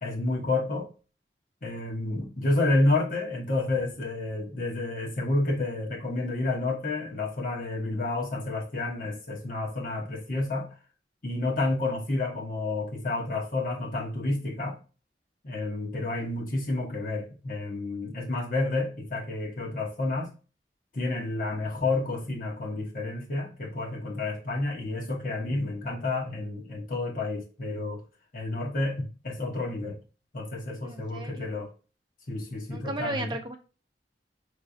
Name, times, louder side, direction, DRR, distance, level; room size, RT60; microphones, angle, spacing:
voice 1, 0.0-0.9 1.6-10.7 11.2-14.8 15.4-20.3 20.9-28.0 28.3-30.0 30.3-31.7 32.3-33.4, left 2 dB, 50° left, 1.2 m, -30 dB
voice 2, 30.8-31.6 32.7-33.6, right 2 dB, 25° right, 0.7 m, -35 dB
5.3 x 3.2 x 2.6 m
head